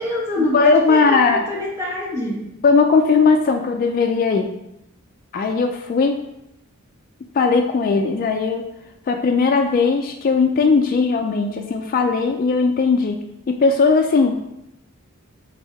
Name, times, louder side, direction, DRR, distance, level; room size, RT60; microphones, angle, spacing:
voice 1, 0.0-2.5, left 1 dB, 15° right, -5 dB, 1.3 m, -25 dB
voice 2, 0.5-1.4 2.6-4.5 5.3-6.2 7.3-8.6 9.1-14.4, left 4 dB, 45° left, 4 dB, 0.3 m, -18 dB
4.1 x 2.7 x 4.5 m, 0.83 s
head